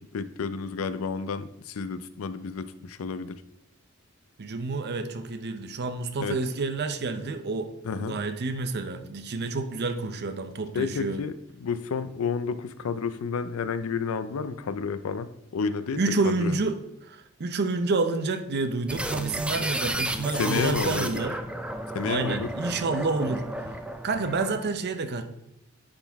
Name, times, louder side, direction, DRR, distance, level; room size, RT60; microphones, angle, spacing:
voice 1, 0.0-3.4 6.2-6.4 7.8-8.2 10.7-16.6 20.3-21.2 21.9-22.5, left 5 dB, 80° left, 13 dB, 0.4 m, -31 dB
voice 2, 4.4-7.7 8.0-11.2 16.0-21.4 22.1-23.5 24.0-25.2, right 3 dB, 50° right, 8 dB, 0.6 m, -29 dB
sound 1, 18.9-24.7, right 1 dB, 5° right, 0.4 m, -32 dB
10.0 x 3.9 x 3.5 m, 0.83 s
head